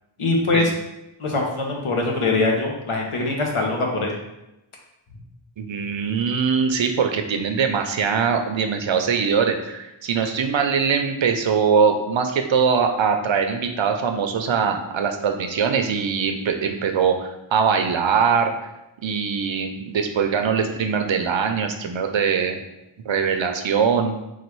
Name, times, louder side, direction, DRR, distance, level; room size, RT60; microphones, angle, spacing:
voice 1, 0.2-0.7 1.2-4.1, left 3 dB, 80° left, 0 dB, 1.0 m, -22 dB
voice 2, 5.6-18.5 19.0-22.6 23.1-24.1, right 6 dB, 65° right, 5 dB, 0.6 m, -22 dB
4.0 x 2.4 x 4.6 m, 0.93 s
wide cardioid pair, 60°, 50 cm